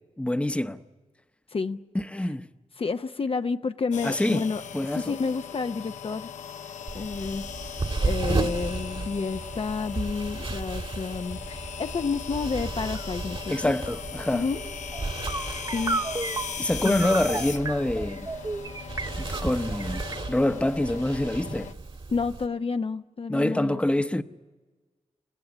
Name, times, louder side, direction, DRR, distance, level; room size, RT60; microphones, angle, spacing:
voice 1, 0.2-0.8 1.9-2.5 4.0-4.4 4.7-5.2 13.5-14.4 16.6-18.3 19.2-21.7 23.3-24.2, left 1 dB, 10° left, 0.9 m, -26 dB
voice 2, 1.5-1.8 2.8-4.6 4.9-6.3 6.9-7.5 8.0-13.7 14.3-14.6 15.7-16.0 16.8-17.1 22.1-23.8, left 4 dB, 50° left, 0.8 m, -30 dB
sound 1, 3.9-21.7, left 7 dB, 90° left, 0.9 m, -39 dB
sound 2, 6.9-22.5, right 3 dB, 45° right, 1.8 m, -34 dB
sound 3, 12.8-13.1 13.4-20.2, right 3 dB, 30° right, 0.9 m, -34 dB
28.5 x 16.5 x 8.5 m
cardioid pair, 60°, 12 cm